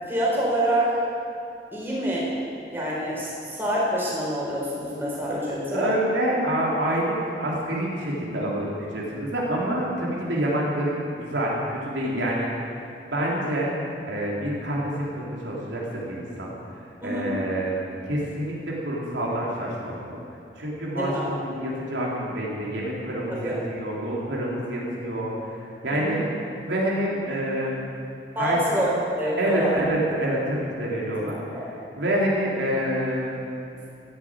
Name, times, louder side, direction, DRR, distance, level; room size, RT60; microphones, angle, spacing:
voice 1, 0.1-1.0 1.7-2.3 2.7-5.9 17.0-17.3 20.8-21.3 23.3-23.6 25.9-26.2 28.3-29.9 31.5-31.7, right 1 dB, 10° right, -6 dB, 4.4 m, -26 dB
voice 2, 5.7-12.5 13.1-13.7 14.1-16.5 17.0-17.8 18.1-20.2 20.6-26.2 26.7-27.8 28.4-28.6 29.4-31.4 32.0-33.3, right 1 dB, 75° right, -4 dB, 3.4 m, -27 dB
14.0 x 11.0 x 8.9 m, 2.6 s
head